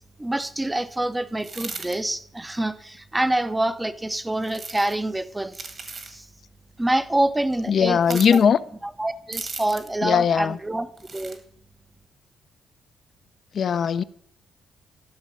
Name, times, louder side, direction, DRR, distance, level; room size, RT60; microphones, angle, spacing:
voice 1, 0.2-5.7 6.0-6.3 6.8-8.5 8.8-10.9 11.1-11.4, right 1 dB, 10° right, 0.6 m, -26 dB
sound 1, 1.4-2.0 4.4-5.0 5.5-6.1 8.0-8.4 9.3-10.0 11.0-11.4, right 4 dB, 45° right, 1.7 m, -36 dB
voice 2, 7.7-8.6 10.0-10.6 13.5-14.0, left 7 dB, 55° left, 0.5 m, -19 dB
12.0 x 6.2 x 5.5 m
cardioid pair, 90°, 0 cm